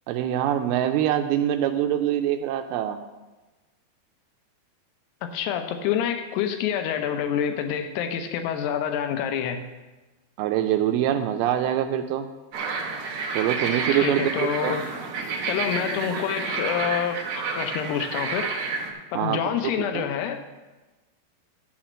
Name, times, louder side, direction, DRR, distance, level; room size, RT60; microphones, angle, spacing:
voice 1, 0.1-3.0 10.4-12.3 13.4-14.8 19.1-20.0, right 11 dB, 85° right, 7 dB, 2.3 m, -24 dB
voice 2, 5.3-9.6 13.9-14.8 15.5-17.2 17.5-18.5 19.1-20.5, left 9 dB, 85° left, 7 dB, 2.9 m, -27 dB
sound 1, 12.5-18.9, right 4 dB, 65° right, 1.9 m, -30 dB
11.0 x 4.3 x 7.3 m, 1.2 s
omnidirectional pair, 4.6 m